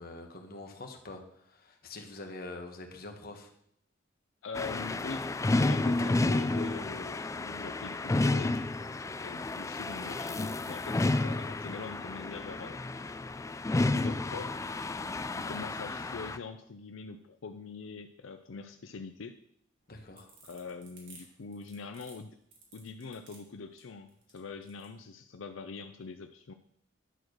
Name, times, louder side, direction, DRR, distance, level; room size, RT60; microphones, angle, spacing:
voice 1, 0.0-3.5 19.9-20.3, left 2 dB, 50° left, 4 dB, 1.4 m, -45 dB
voice 2, 4.4-8.7 9.2-13.1 13.9-14.6 15.3-19.4 20.4-22.4 22.7-26.5, left 4 dB, 85° left, 7 dB, 0.5 m, -43 dB
sound 1, 4.5-16.4, left 2 dB, 15° left, 0.3 m, -31 dB
sound 2, 19.8-24.9, right 4 dB, 80° right, 2.6 m, -56 dB
11.0 x 4.6 x 6.4 m, 0.71 s
head